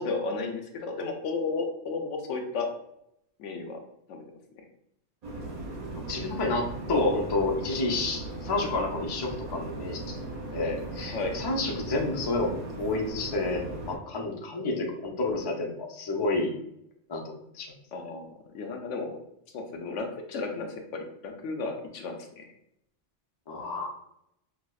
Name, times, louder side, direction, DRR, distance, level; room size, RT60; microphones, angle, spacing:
voice 1, 0.0-2.7 3.4-3.8 4.1-4.2 11.1-11.3 17.9-18.3 18.5-19.2 19.5-22.5, left 3 dB, 90° left, 4 dB, 0.9 m, -33 dB
sound 1, 5.2-14.0, right 2 dB, 45° right, 0.5 m, -38 dB
voice 2, 6.1-10.2 10.5-16.6 17.1-17.7 23.5-23.9, left 2 dB, 40° left, 0 dB, 0.4 m, -30 dB
4.8 x 2.0 x 2.3 m, 0.76 s
omnidirectional pair, 1.2 m